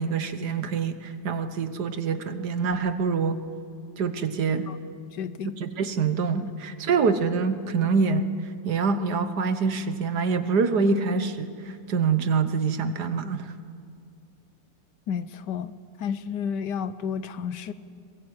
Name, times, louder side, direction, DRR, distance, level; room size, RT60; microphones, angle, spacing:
voice 1, 0.0-3.4 4.0-4.7 5.6-8.3 8.7-13.5, right 5 dB, 60° right, 10 dB, 1.6 m, -25 dB
voice 2, 5.1-5.6 15.1-17.7, left 7 dB, 70° left, 14 dB, 1.4 m, -31 dB
22.0 x 21.5 x 8.8 m, 2.4 s
omnidirectional pair, 2.0 m